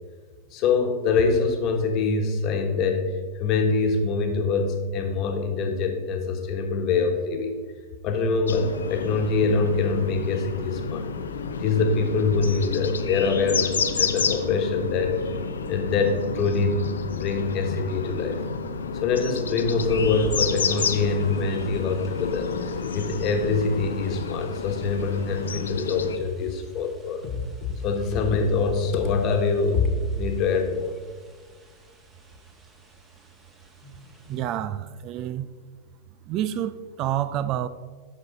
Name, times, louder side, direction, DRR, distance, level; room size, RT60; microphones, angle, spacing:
voice 1, 0.5-3.0 3.3-7.6 8.0-11.1 11.6-15.2 15.7-18.4 18.9-22.5 22.9-27.4 27.7-30.9 33.8-34.0 34.3-34.5, left 4 dB, 45° left, 4 dB, 1.2 m, -24 dB
sound 1, 8.5-26.2, left 5 dB, 85° left, 0.5 m, -30 dB
sound 2, 19.8-34.4, right 2 dB, 20° right, 1.4 m, -45 dB
voice 2, 34.3-35.5 36.3-37.7, right 11 dB, 45° right, 14 dB, 0.3 m, -28 dB
7.9 x 5.4 x 3.9 m, 1.5 s
hypercardioid pair, 105°, 0 cm